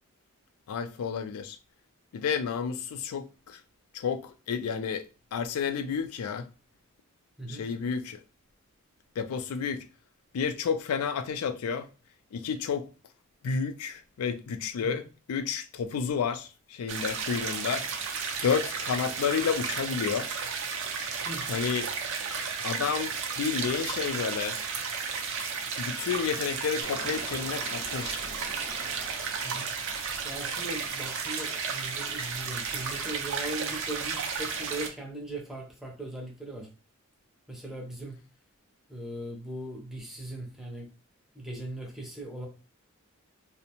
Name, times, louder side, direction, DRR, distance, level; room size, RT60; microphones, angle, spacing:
voice 1, 0.7-1.6 2.1-3.6 3.9-5.0 5.3-6.5 7.5-8.2 9.2-9.8 10.3-11.9 12.3-12.9 13.4-17.8 18.4-20.3 21.5-21.9 22.6-24.6 25.8-28.2, left 6 dB, 80° left, 0.3 m, -31 dB
sound 1, 16.9-34.9, right 5 dB, 60° right, 0.5 m, -33 dB
Engine, 26.8-31.5 31.8-32.2, right 1 dB, 80° right, 0.8 m, -45 dB
voice 2, 30.2-36.7 37.5-38.2 38.9-40.9 41.3-42.5, right 1 dB, ahead, 0.6 m, -39 dB
2.5 x 2.1 x 2.8 m
head